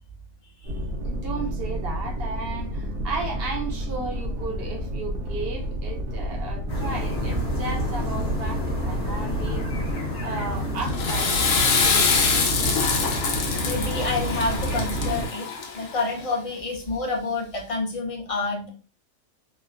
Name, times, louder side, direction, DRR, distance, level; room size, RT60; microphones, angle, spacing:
sound 1, 0.6-9.9, equal, 85° right, 1.2 m, -31 dB
voice 1, 1.0-9.7 10.2-11.4 11.8-12.7, right 3 dB, 55° right, 0.8 m, -34 dB
sound 2, 6.7-15.3, equal, 55° left, 1.2 m, -29 dB
Water / Toilet flush, 10.8-16.0, left 5 dB, 80° left, 1.0 m, -24 dB
voice 2, 13.6-15.5 15.7-18.7, left 3 dB, 35° left, 0.6 m, -28 dB
3.1 x 2.1 x 2.5 m
omnidirectional pair, 1.4 m